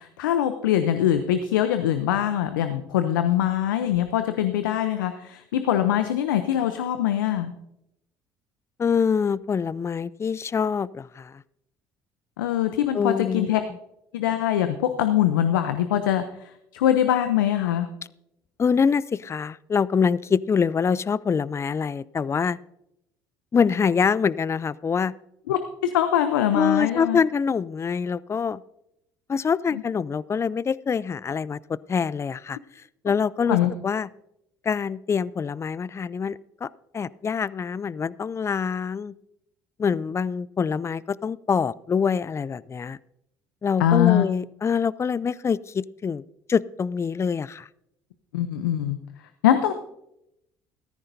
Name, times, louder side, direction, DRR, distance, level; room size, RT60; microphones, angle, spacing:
voice 1, 0.0-7.5 12.4-13.6 14.1-17.9 25.5-27.2 33.5-33.7 43.8-44.2 48.3-49.0 49.4-49.7, left 11 dB, 85° left, 9 dB, 0.6 m, -23 dB
voice 2, 8.8-11.4 12.9-13.6 18.6-22.6 23.5-25.1 26.5-28.6 29.3-32.6 33.0-33.6 33.8-34.1 34.6-39.1 39.8-43.0 43.6-46.2 46.5-47.7, left 6 dB, 25° left, 21 dB, 0.4 m, -25 dB
14.5 x 14.0 x 2.7 m, 0.81 s
hypercardioid pair, 65°, 11 cm